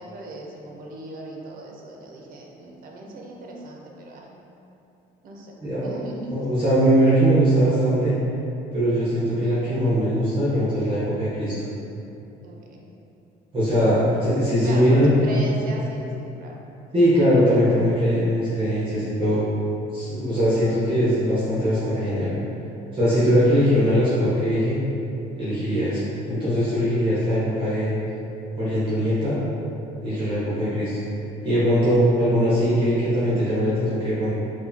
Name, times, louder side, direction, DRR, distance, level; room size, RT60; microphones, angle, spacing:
voice 1, 0.0-4.3 5.2-5.5 5.8-6.5 12.4-12.8 14.6-16.5 30.1-30.6, right 1 dB, 55° right, -1 dB, 0.6 m, -38 dB
voice 2, 5.6-6.0 6.3-8.1 8.7-11.5 13.5-15.2 16.9-19.4 19.9-22.3 22.9-24.8 25.4-27.9 28.6-29.4 30.0-31.0 31.4-34.3, equal, 30° right, -10 dB, 0.9 m, -21 dB
4.6 x 2.2 x 2.7 m, 2.9 s
cardioid pair, 110°, 17 cm